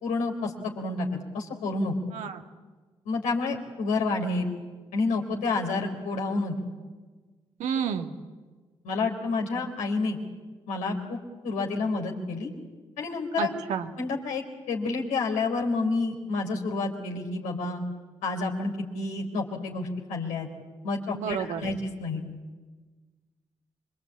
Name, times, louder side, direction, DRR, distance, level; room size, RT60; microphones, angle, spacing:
voice 1, 0.0-1.9 3.1-4.5 4.9-6.5 8.8-10.2 10.7-11.2 11.4-12.5 13.0-13.5 14.0-17.8 18.2-20.5 20.8-22.2, left 3 dB, 80° left, 1 dB, 4.3 m, -29 dB
voice 2, 2.1-2.4 7.6-8.1 13.4-13.9 21.1-21.7, right 7 dB, 75° right, 5 dB, 2.0 m, -30 dB
26.5 x 24.0 x 8.7 m, 1.3 s
hypercardioid pair, 45°, 13 cm